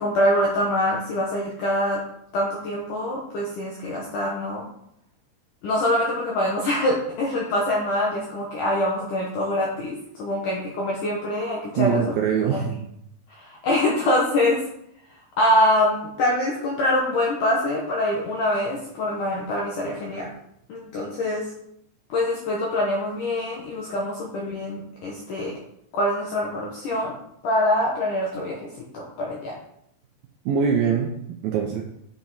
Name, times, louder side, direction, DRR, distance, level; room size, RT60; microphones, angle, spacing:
voice 1, 0.0-2.0 2.3-4.6 5.6-12.1 12.5-12.7 13.4-14.7 15.4-20.3 20.7-21.5 22.1-25.5 25.9-27.2 27.4-29.6, left 1 dB, 70° left, -2 dB, 2.0 m, -24 dB
voice 2, 11.8-12.9 30.5-31.8, right 7 dB, 85° right, 1 dB, 2.1 m, -23 dB
9.5 x 6.0 x 4.1 m, 0.75 s
omnidirectional pair, 5.1 m